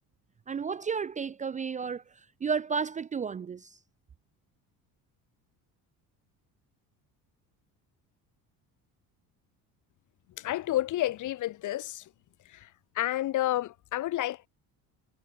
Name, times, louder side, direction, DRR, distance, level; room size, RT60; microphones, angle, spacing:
voice 1, 0.5-2.0 2.4-3.8, right 6 dB, 20° right, 0.5 m, -32 dB
voice 2, 10.4-12.1 12.5-12.7 12.9-14.5, left 14 dB, 55° left, 2.4 m, -30 dB
cardioid pair, 155°, 36 cm